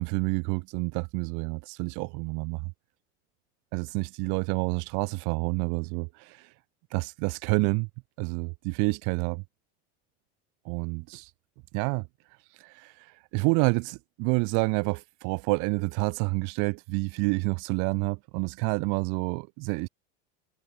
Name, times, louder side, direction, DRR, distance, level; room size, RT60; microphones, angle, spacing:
voice 1, 0.0-2.7 3.7-6.5 6.9-7.9 8.2-9.4 10.7-11.3 11.7-12.1 12.6-19.9, right 33 dB, 65° right, 1.8 m, -28 dB
supercardioid pair, 100°, 32 cm